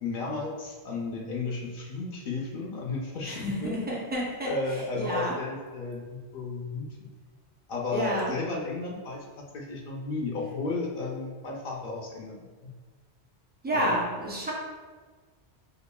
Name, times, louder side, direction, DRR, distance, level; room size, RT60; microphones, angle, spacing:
voice 1, 0.0-3.8 4.4-7.1 7.7-12.7 13.7-13.9, left 3 dB, 60° left, -1 dB, 0.7 m, -34 dB
voice 2, 3.3-4.5 5.0-5.3 7.9-8.3 13.6-14.5, right 1 dB, 15° right, -4 dB, 0.4 m, -29 dB
5.1 x 2.3 x 2.2 m, 1.4 s
omnidirectional pair, 1.2 m